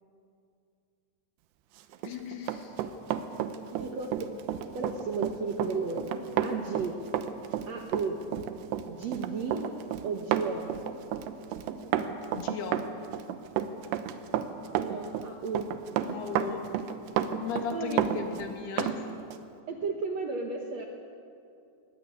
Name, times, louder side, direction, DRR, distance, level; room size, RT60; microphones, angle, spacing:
Run, 1.9-19.0 19.3-19.5, right 9 dB, 90° right, 3.1 m, -32 dB
voice 1, 2.0-2.7 12.3-12.9 16.1-16.6 17.4-19.1, left 6 dB, 75° left, 3 dB, 3.9 m, -36 dB
voice 2, 3.7-4.3 4.7-6.0 6.4-7.0 7.7-8.2 8.8-9.7 10.0-10.7 14.8-15.7 17.7-18.0 19.7-20.9, right 4 dB, 65° right, 2 dB, 1.8 m, -33 dB
21.5 x 20.0 x 8.5 m, 2.5 s
omnidirectional pair, 4.7 m